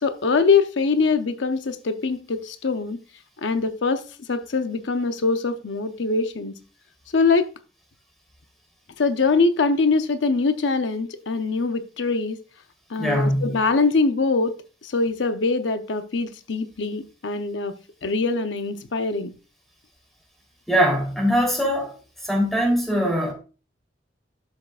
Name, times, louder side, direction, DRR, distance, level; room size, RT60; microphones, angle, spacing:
voice 1, 0.0-3.0 3.4-4.0 4.3-6.6 7.1-7.5 9.0-12.4 12.9-14.6 14.8-17.7 18.0-19.3, left 4 dB, 90° left, 0.7 m, -23 dB
voice 2, 13.0-13.6 20.7-22.0 22.2-23.3, equal, ahead, 3.4 m, -21 dB
12.0 x 6.5 x 2.4 m
head